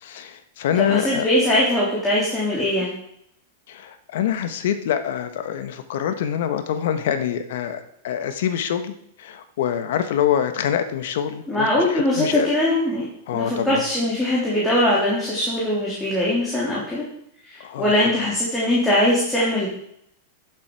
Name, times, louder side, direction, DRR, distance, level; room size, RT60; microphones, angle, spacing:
voice 1, 0.0-1.3 3.7-12.5 13.3-13.8 17.6-18.2, left 9 dB, 70° left, 9 dB, 1.3 m, -25 dB
voice 2, 0.8-2.9 11.5-13.1 13.3-17.0 17.5-19.7, left 1 dB, 10° left, -7 dB, 3.3 m, -21 dB
11.5 x 7.4 x 4.8 m, 0.72 s
supercardioid pair, 135°, 0 cm